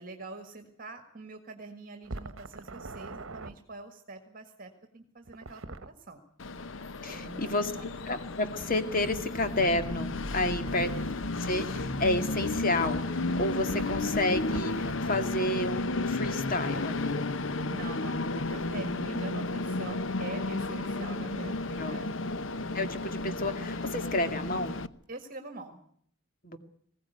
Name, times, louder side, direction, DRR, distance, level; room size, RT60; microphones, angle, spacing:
voice 1, 0.0-6.2 7.1-8.0 17.7-22.1 25.1-25.8, right 2 dB, 40° right, 6 dB, 1.8 m, -44 dB
sound 1, 2.0-3.5 5.3-5.9 8.6-15.0, right 2 dB, 70° right, 1.1 m, -44 dB
Train, 6.4-24.9, left 2 dB, 65° left, 0.9 m, -33 dB
voice 2, 7.0-10.9 11.4-17.2 21.8-22.0 22.7-24.8 26.4-26.6, left 1 dB, 40° left, 8 dB, 2.2 m, -30 dB
21.0 x 16.5 x 9.3 m, 0.65 s
head